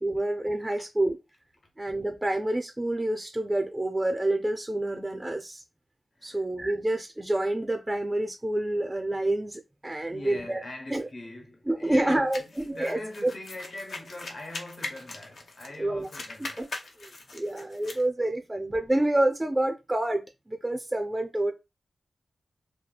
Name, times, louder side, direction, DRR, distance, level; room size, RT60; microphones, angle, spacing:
voice 1, 0.0-1.2 1.8-5.6 6.2-10.6 10.9-11.1 11.7-13.3 15.8-16.1 16.4-16.7 17.0-21.5, right 1 dB, 15° right, 0.3 m, -28 dB
voice 2, 10.0-16.7, left 1 dB, 50° left, 1.0 m, -42 dB
sound 1, 12.3-15.8 16.0-18.0, left 3 dB, 70° left, 0.5 m, -41 dB
2.8 x 2.3 x 2.2 m
cardioid pair, 75°, 0 cm